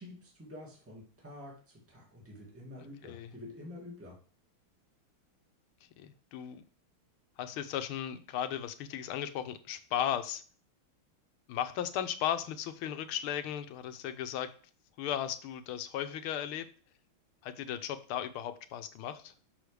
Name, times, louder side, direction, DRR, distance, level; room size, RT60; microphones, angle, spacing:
voice 1, 0.0-4.2, left 1 dB, 5° right, -2 dB, 2.0 m, -48 dB
voice 2, 6.0-6.6 7.4-10.4 11.5-14.5 15.0-16.7 17.4-19.3, left 10 dB, 80° left, 10 dB, 1.6 m, -36 dB
6.3 x 6.3 x 3.3 m, 0.40 s
omnidirectional pair, 2.3 m